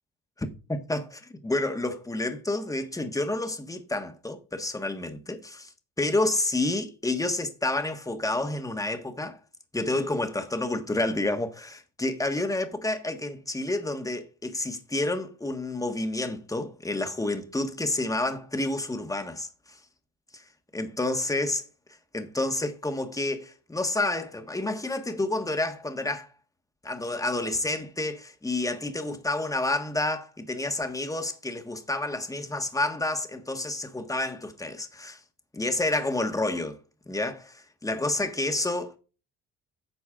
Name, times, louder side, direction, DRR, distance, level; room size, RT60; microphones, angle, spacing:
voice 1, 0.4-5.7 6.0-9.4 9.7-19.5 20.3-20.4 20.7-21.6 22.1-26.3 26.8-35.2 35.5-36.8 37.1-39.0, left 2 dB, 10° left, 1.5 m, -29 dB
10.0 x 6.1 x 3.7 m
cardioid pair, 90°, 29 cm